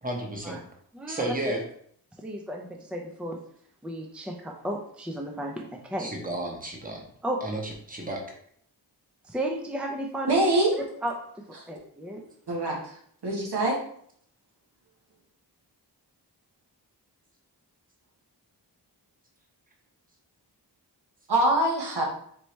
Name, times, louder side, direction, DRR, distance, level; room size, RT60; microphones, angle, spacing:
voice 1, 0.0-0.6 1.1-1.6 6.0-7.0 7.4-8.2, right 1 dB, 20° right, 0 dB, 1.1 m, -32 dB
voice 2, 0.9-1.3 2.2-3.4 3.8-6.1 7.2-7.4 9.3-10.4 10.8-11.1 11.7-12.2, right 1 dB, 5° right, 1 dB, 0.6 m, -33 dB
voice 3, 10.3-10.7 12.5-12.9 13.2-13.8 21.3-22.0, right 1 dB, 70° right, -2 dB, 1.3 m, -24 dB
4.6 x 2.9 x 3.2 m, 0.64 s
cardioid pair, 55°, 41 cm